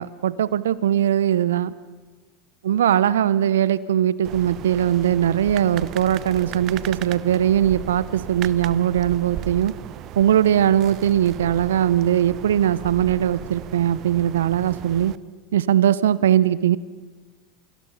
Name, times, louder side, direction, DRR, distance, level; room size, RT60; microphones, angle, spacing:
voice 1, 0.0-1.7 2.6-9.7 10.2-15.1 15.5-16.8, right 10 dB, 75° right, 18 dB, 1.0 m, -20 dB
sound 1, 4.2-15.2, right 13 dB, 50° right, 0.9 m, -36 dB
28.5 x 25.0 x 5.8 m, 1.3 s
hypercardioid pair, 80°, 0 cm